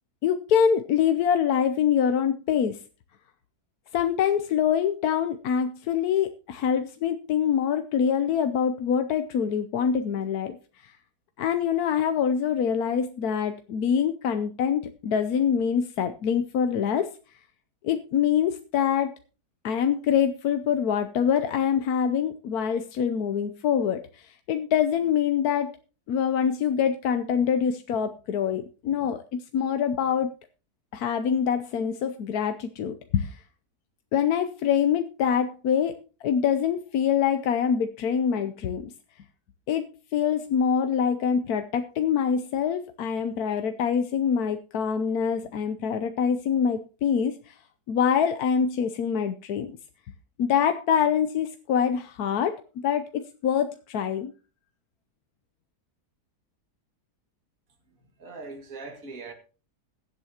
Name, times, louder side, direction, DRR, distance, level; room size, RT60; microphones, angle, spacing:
voice 1, 0.2-2.8 3.9-11.0 11.4-17.1 17.8-19.1 19.6-25.7 26.1-30.3 30.9-33.4 34.1-36.0 36.2-38.9 39.7-39.9 40.1-47.6 47.9-49.8 50.4-52.6 52.8-54.3, left 8 dB, 70° left, 1.2 m, -25 dB
voice 2, 57.9-59.3, right 3 dB, 55° right, 2.6 m, -41 dB
21.5 x 8.3 x 2.9 m
omnidirectional pair, 1.7 m